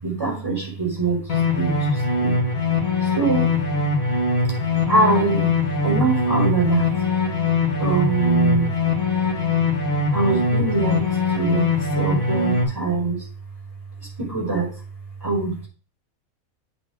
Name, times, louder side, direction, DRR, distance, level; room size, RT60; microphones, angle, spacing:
voice 1, 0.0-2.4 3.0-3.6 4.9-5.5 5.8-6.9 7.8-8.8 10.1-13.3 14.0-14.7 15.2-15.7, right 3 dB, 15° right, -3 dB, 5.1 m, -23 dB
sound 1, 1.3-12.6, left 3 dB, 80° left, 2.2 m, -22 dB
8.1 x 3.9 x 6.5 m, 0.37 s
omnidirectional pair, 1.4 m